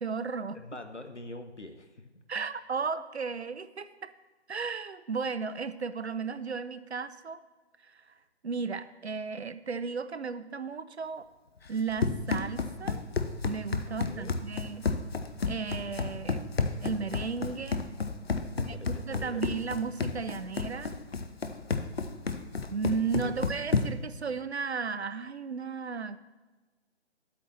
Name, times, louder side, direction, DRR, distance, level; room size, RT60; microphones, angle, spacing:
voice 1, 0.0-0.6 2.3-4.1 4.5-7.4 7.8-8.1 8.4-11.3 11.7-13.0 13.4-14.9 15.5-16.5 16.8-17.8 18.7-18.8 19.0-20.9 22.7-26.2, right 5 dB, 70° right, 13 dB, 0.6 m, -34 dB
voice 2, 0.5-2.5 13.9-14.3 18.4-19.4 23.2-23.3, left 2 dB, 90° left, 7 dB, 1.1 m, -45 dB
Run, 11.7-24.1, left 4 dB, 60° left, 0.7 m, -32 dB
11.5 x 8.4 x 3.0 m, 1.2 s
figure-of-eight pair, 150°, 34 cm